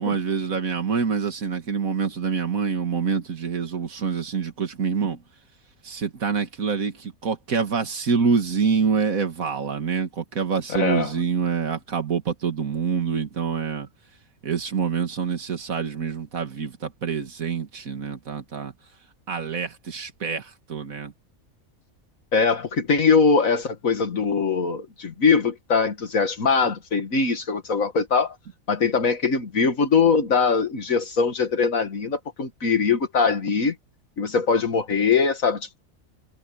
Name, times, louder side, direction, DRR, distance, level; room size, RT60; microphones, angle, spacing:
voice 1, 0.0-5.2 5.8-13.9 14.4-18.7 19.3-21.1, right 6 dB, 90° right, 2.2 m, -26 dB
voice 2, 10.7-11.1 22.3-28.4 28.7-33.7 34.2-35.8, left 5 dB, 75° left, 2.1 m, -22 dB
omnidirectional pair, 1.4 m